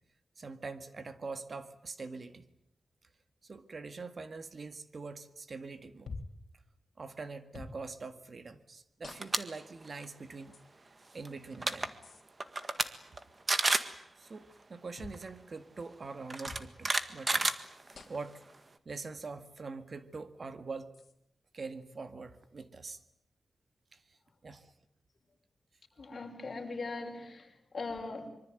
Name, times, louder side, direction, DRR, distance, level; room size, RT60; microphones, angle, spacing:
voice 1, 0.4-2.5 3.4-6.1 7.0-10.6 11.1-11.9 14.2-17.5 18.1-18.4 18.9-20.9 21.5-23.0 23.9-24.2 24.4-24.7, right 4 dB, 45° right, 11 dB, 1.9 m, -44 dB
sound 1, 6.1-6.4 7.5-7.8 9.0-9.5 10.5-10.6 12.0-12.2 15.0-15.2 16.5-16.7 17.9-18.3 19.5-19.6 20.9-21.1, left 3 dB, 65° left, 3.2 m, -47 dB
sound 2, 9.1-9.4 9.8-10.0 11.2-11.3 11.5-11.9 12.4-12.9 13.2-13.3 13.5-13.9 15.1-15.2 16.3-18.2, right 3 dB, 30° right, 1.7 m, -30 dB
voice 2, 26.0-28.3, left 3 dB, 40° left, 2 dB, 5.8 m, -40 dB
25.0 x 24.0 x 9.2 m, 0.80 s
wide cardioid pair, 125°, 0 cm